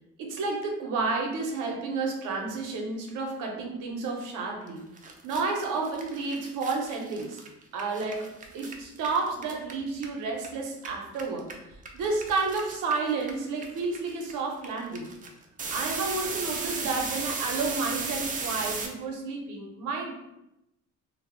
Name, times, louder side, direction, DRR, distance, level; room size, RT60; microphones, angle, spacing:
voice 1, 0.2-4.9 5.2-7.4 7.7-11.6 11.9-15.1 15.7-20.2, right 4 dB, 90° right, 1 dB, 0.6 m, -31 dB
sound 1, 4.7-4.8 5.0-10.5 10.7-18.9, right 4 dB, 30° right, 0.4 m, -35 dB
2.0 x 2.0 x 3.5 m, 0.89 s
cardioid pair, 90°, 30 cm